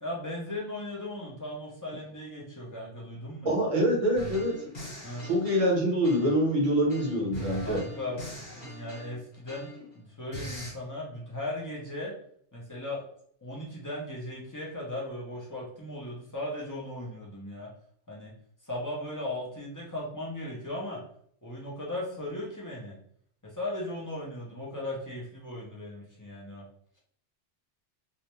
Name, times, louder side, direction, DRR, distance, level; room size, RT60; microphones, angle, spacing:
voice 1, 0.0-3.6 5.0-5.3 7.6-9.7 9.9-12.1 12.5-13.0 13.4-17.7 18.1-18.3 18.6-21.0 21.4-22.9 23.4-26.6, left 1 dB, 30° left, -5 dB, 0.4 m, -37 dB
voice 2, 3.4-4.5 5.2-7.8, equal, 30° right, -2 dB, 0.8 m, -25 dB
sound 1, 4.1-6.5 6.9-9.9 10.3-10.7, right 1 dB, 45° left, 1.2 m, -42 dB
2.5 x 2.1 x 3.0 m, 0.62 s
omnidirectional pair, 1.2 m